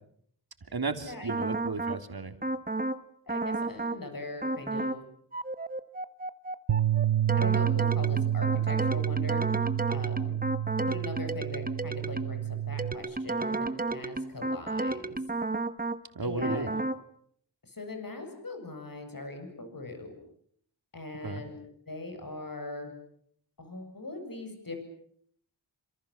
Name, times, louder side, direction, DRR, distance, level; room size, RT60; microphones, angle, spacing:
voice 1, 0.7-2.3 16.1-16.7 21.2-21.4, right 4 dB, 55° right, 8 dB, 3.2 m, -33 dB
sound 1, 1.3-2.0 2.4-3.0 3.3-4.0 4.4-5.0 5.3-12.4 12.8-16.0 16.4-17.0, right 2 dB, 20° right, 1.3 m, -32 dB
voice 2, 3.3-5.0 7.3-9.4 9.9-10.3 10.8-15.2 16.2-16.7 17.6-20.1 20.9-21.6 21.9-22.9 23.6-24.8, left 2 dB, 50° left, 5 dB, 7.8 m, -40 dB
Bass guitar, 6.7-12.9, right 11 dB, 75° right, 1.1 m, -29 dB
28.0 x 27.0 x 7.2 m, 0.66 s
wide cardioid pair, 80°, 44 cm